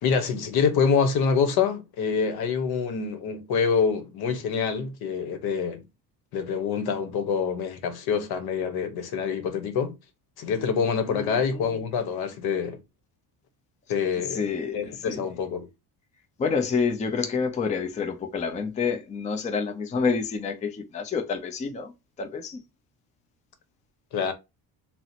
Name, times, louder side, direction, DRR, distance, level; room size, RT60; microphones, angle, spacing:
voice 1, 0.0-5.8 6.3-10.0 10.4-12.8 13.9-14.4 14.7-15.7 24.1-24.3, left 6 dB, 70° left, 0.9 m, -26 dB
voice 2, 11.1-11.8 14.3-15.2 16.4-21.9 22.2-22.6, left 5 dB, 20° left, 0.4 m, -28 dB
2.8 x 2.0 x 3.9 m
cardioid pair, 130°, 40 cm